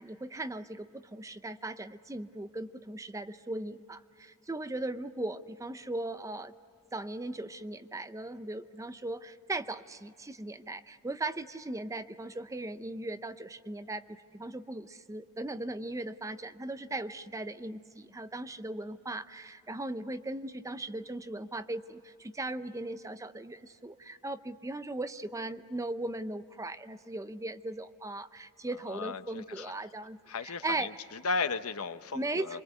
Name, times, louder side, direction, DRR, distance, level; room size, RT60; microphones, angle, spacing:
voice 1, 0.0-6.5 6.9-31.0 32.1-32.6, right 2 dB, 15° right, 11 dB, 0.6 m, -38 dB
voice 2, 28.9-29.7 30.3-32.6, left 4 dB, 75° left, 11 dB, 0.9 m, -35 dB
27.5 x 23.5 x 8.2 m, 2.3 s
head